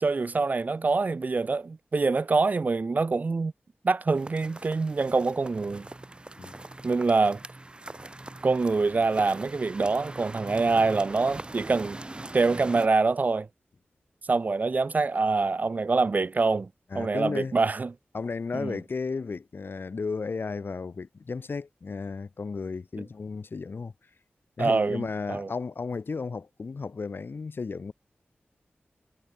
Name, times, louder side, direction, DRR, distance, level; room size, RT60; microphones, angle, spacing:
voice 1, 0.0-3.5 3.8-5.9 6.8-7.4 8.4-12.0 12.3-13.5 14.3-16.7 16.9-17.9 18.5-18.8 24.6-25.5, right 3 dB, 45° right, 0.3 m, -25 dB
sound 1, 4.1-12.9, right 2 dB, 25° right, 0.9 m, -41 dB
voice 2, 16.9-17.5 18.1-23.9 24.6-27.9, left 4 dB, 65° left, 1.3 m, -34 dB
wide cardioid pair, 75°, 4 cm